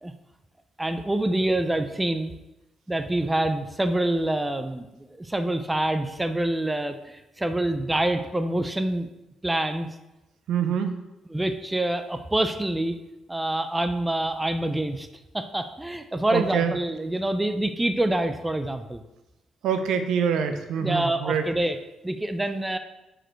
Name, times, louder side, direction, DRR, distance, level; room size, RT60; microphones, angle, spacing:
voice 1, 0.8-2.3 2.9-9.1 9.4-9.9 11.3-12.9 13.3-15.1 15.3-19.0 20.8-21.8 22.0-22.8, right 1 dB, 10° right, 9 dB, 0.5 m, -26 dB
voice 2, 10.5-10.9 16.3-16.7 19.6-21.4, right 7 dB, 80° right, 8 dB, 0.6 m, -25 dB
6.4 x 5.0 x 4.5 m, 0.99 s
cardioid pair, 90°, 0 cm